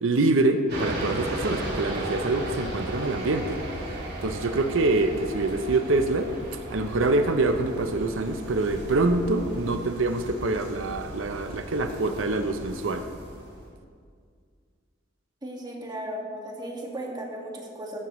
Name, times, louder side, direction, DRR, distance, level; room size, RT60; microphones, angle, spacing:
voice 1, 0.0-3.6 4.2-6.3 6.7-13.1, right 2 dB, 85° right, 7 dB, 0.7 m, -25 dB
sound 1, 0.7-13.7, right 1 dB, 55° right, 3.1 m, -36 dB
voice 2, 15.4-18.0, right 1 dB, 20° right, -1 dB, 1.8 m, -36 dB
14.0 x 12.0 x 3.1 m, 2.1 s
head